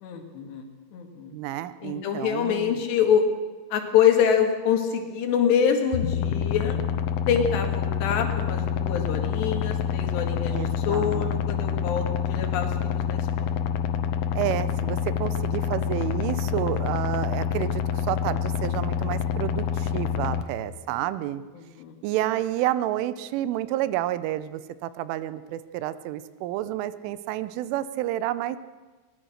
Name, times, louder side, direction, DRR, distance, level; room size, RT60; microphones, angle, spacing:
voice 1, 0.0-1.3 1.8-3.2 3.7-6.8 7.3-10.6 10.9-13.5 21.8-21.9, left 8 dB, 65° left, 4 dB, 3.9 m, -25 dB
voice 2, 1.3-2.9 10.5-11.4 11.7-11.9 14.4-21.4 22.0-28.6, right 13 dB, 90° right, 14 dB, 3.3 m, -30 dB
sound 1, 5.9-20.4, left 8 dB, 90° left, 3.5 m, -27 dB
22.5 x 19.0 x 6.5 m, 1.3 s
omnidirectional pair, 5.5 m